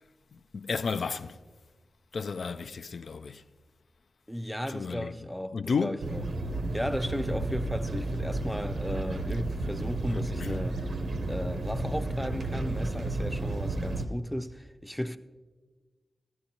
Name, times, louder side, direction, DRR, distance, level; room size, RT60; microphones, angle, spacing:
voice 1, 0.5-1.4 2.1-3.4 4.7-5.1 5.5-6.0 10.1-10.6, left 5 dB, 70° left, 0.3 m, -32 dB
voice 2, 4.3-6.2 6.7-15.2, equal, ahead, 0.5 m, -35 dB
sound 1, 6.0-14.1, right 2 dB, 75° right, 0.8 m, -32 dB
14.0 x 12.0 x 2.9 m
wide cardioid pair, 90°, 0 cm